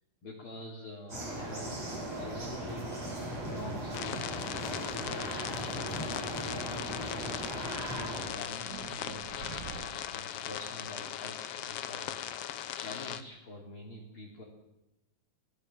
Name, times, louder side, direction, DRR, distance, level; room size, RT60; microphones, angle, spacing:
voice 1, 0.2-1.9 2.1-2.9 3.3-7.4 8.1-12.4 12.7-14.4, left 1 dB, 35° left, -1 dB, 3.5 m, -47 dB
sound 1, 1.1-8.3, right 1 dB, 45° right, 9.2 m, -38 dB
sound 2, 3.9-13.2, left 11 dB, 85° left, 1.3 m, -39 dB
sound 3, 7.4-10.7, right 6 dB, 60° right, 2.7 m, -48 dB
24.0 x 17.5 x 7.3 m, 0.93 s
omnidirectional pair, 4.2 m